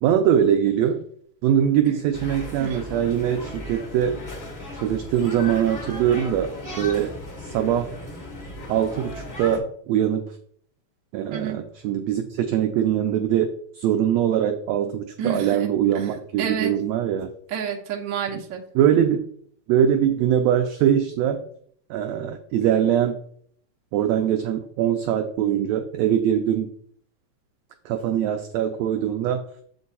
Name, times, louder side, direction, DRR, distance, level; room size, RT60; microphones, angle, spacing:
voice 1, 0.0-1.0 1.4-4.2 4.7-7.1 7.4-7.9 8.7-10.4 11.1-17.3 18.7-19.3 19.7-21.4 21.9-23.2 23.9-26.7 27.8-29.4, right 9 dB, 85° right, 6 dB, 1.5 m, -22 dB
sound 1, 2.1-9.6, left 1 dB, 75° left, 0.5 m, -36 dB
voice 2, 15.2-15.7 15.9-16.0 16.4-16.7 17.5-18.6, right 7 dB, 70° right, 2 dB, 1.1 m, -29 dB
7.3 x 4.7 x 4.1 m, 0.63 s
omnidirectional pair, 3.5 m